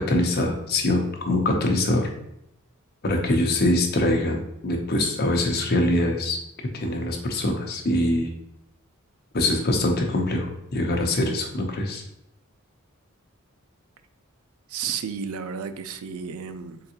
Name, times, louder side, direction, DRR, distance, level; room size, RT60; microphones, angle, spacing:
voice 1, 0.0-2.1 3.0-6.4 6.7-8.3 9.3-12.0, left 1 dB, 45° left, 2 dB, 0.7 m, -23 dB
voice 2, 14.7-16.8, right 7 dB, 75° right, 10 dB, 0.4 m, -32 dB
3.8 x 3.5 x 2.8 m, 0.81 s
head